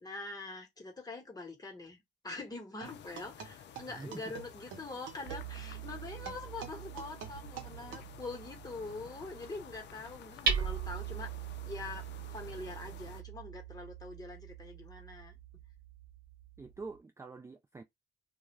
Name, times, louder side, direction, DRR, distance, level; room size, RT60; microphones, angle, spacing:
voice 1, 0.0-11.3 11.6-15.3, left 3 dB, 20° left, 1.1 m, -44 dB
sound 1, 2.8-13.2, left 9 dB, 65° left, 0.5 m, -53 dB
sound 2, 2.8-8.0, right 8 dB, 80° right, 0.8 m, -48 dB
Hammer, 5.2-17.0, right 6 dB, 50° right, 1.0 m, -41 dB
voice 2, 16.6-17.8, right 3 dB, 15° right, 0.3 m, -46 dB
2.4 x 2.2 x 3.1 m
cardioid pair, 90°, 20 cm